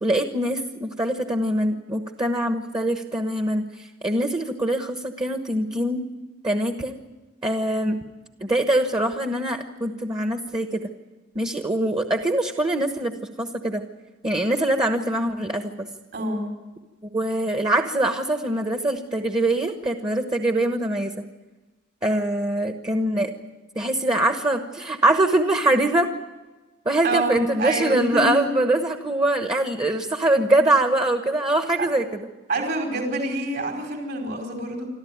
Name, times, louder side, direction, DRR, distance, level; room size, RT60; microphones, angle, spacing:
voice 1, 0.0-6.0 6.4-6.9 7.4-8.0 8.4-10.8 11.3-13.8 14.2-15.9 17.1-21.1 22.0-23.3 23.7-26.1 26.8-32.2, right 1 dB, 25° right, 6 dB, 1.2 m, -23 dB
voice 2, 16.1-16.5 27.0-28.5 32.5-34.9, right 2 dB, 60° right, 1 dB, 4.7 m, -26 dB
26.5 x 13.5 x 9.4 m, 1.2 s
head